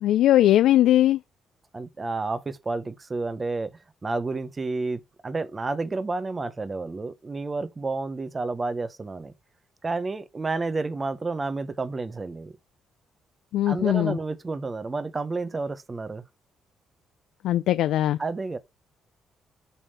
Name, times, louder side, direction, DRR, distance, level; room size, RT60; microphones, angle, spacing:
voice 1, 0.0-1.2 13.5-14.2 17.4-18.2, left 13 dB, 80° left, 0.4 m, -20 dB
voice 2, 1.7-3.7 4.0-9.3 9.8-12.5 13.7-16.2 18.2-18.6, right 3 dB, 25° right, 0.9 m, -30 dB
8.2 x 3.6 x 5.6 m
cardioid pair, 90°, 0 cm